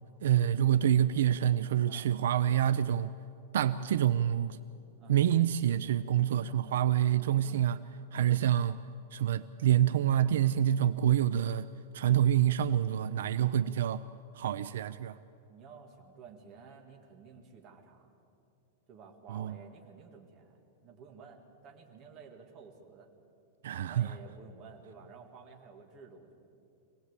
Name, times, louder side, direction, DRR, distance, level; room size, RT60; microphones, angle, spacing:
voice 1, 0.2-3.1 3.5-4.6 5.1-7.8 8.1-8.8 9.1-11.7 11.9-14.0 14.4-15.2 19.3-19.6 23.6-24.1, right 11 dB, 70° right, 13 dB, 0.6 m, -27 dB
voice 2, 6.3-6.8 7.4-7.6 15.5-18.2 18.9-23.1 23.9-26.3, right 5 dB, 25° right, 2 dB, 2.2 m, -53 dB
25.0 x 18.0 x 8.3 m, 2.6 s
supercardioid pair, 175°, 0 cm